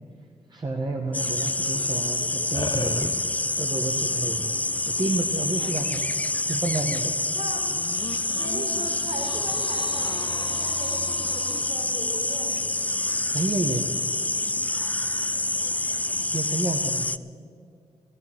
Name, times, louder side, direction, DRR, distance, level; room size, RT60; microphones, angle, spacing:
voice 1, 0.5-3.2 3.6-4.5 4.8-6.1 6.4-7.3 13.2-13.9 16.3-17.1, right 2 dB, 35° right, 2 dB, 1.3 m, -30 dB
sound 1, 1.1-17.2, left 2 dB, 10° left, 0.4 m, -27 dB
sound 2, 2.5-3.8 4.4-4.5 7.7-11.7, left 4 dB, 35° left, 0.8 m, -37 dB
voice 2, 7.3-7.8 8.3-12.6, right 1 dB, 55° right, 0 dB, 4.7 m, -39 dB
14.0 x 13.5 x 6.1 m, 2.2 s
cardioid pair, 75°, 13 cm